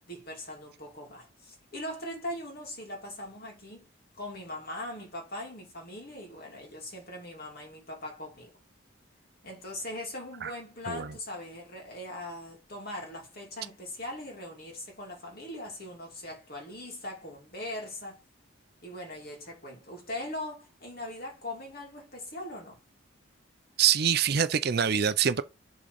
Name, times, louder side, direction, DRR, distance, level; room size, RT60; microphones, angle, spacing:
voice 1, 0.1-3.9 4.1-8.6 9.4-18.2 18.8-22.8, left 1 dB, 45° left, 2.6 m, -40 dB
voice 2, 23.8-25.4, right 8 dB, 50° right, 0.5 m, -25 dB
7.0 x 3.8 x 5.1 m
head